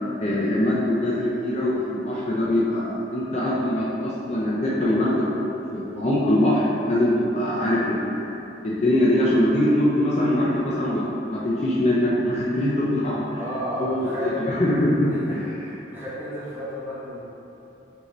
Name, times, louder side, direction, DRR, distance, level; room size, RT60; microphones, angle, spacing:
voice 1, 0.2-8.3 8.6-13.4 13.8-15.5, left 1 dB, 35° left, -6 dB, 0.4 m, -23 dB
voice 2, 13.4-14.4 15.1-17.2, equal, 10° right, -11 dB, 1.0 m, -33 dB
5.0 x 2.7 x 3.0 m, 2.9 s
head